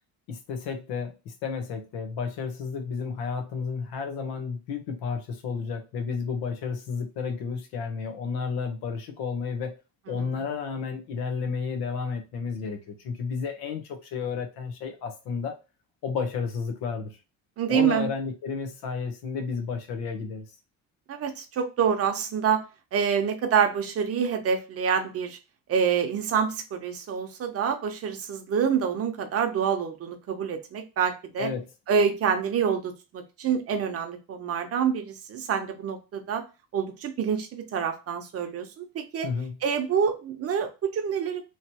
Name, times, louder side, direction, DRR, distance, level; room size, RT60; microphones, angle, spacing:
voice 1, 0.3-9.7 10.1-15.5 16.0-17.1 17.7-20.4 31.4-31.7 39.2-39.6, left 5 dB, 85° left, 1.0 m, -32 dB
voice 2, 10.1-10.4 17.6-18.1 21.1-22.6 22.9-25.4 25.7-31.5 31.9-36.4 36.7-39.3 39.6-41.4, right 7 dB, 40° right, 0.7 m, -27 dB
3.1 x 2.9 x 2.8 m
cardioid pair, 145°, 36 cm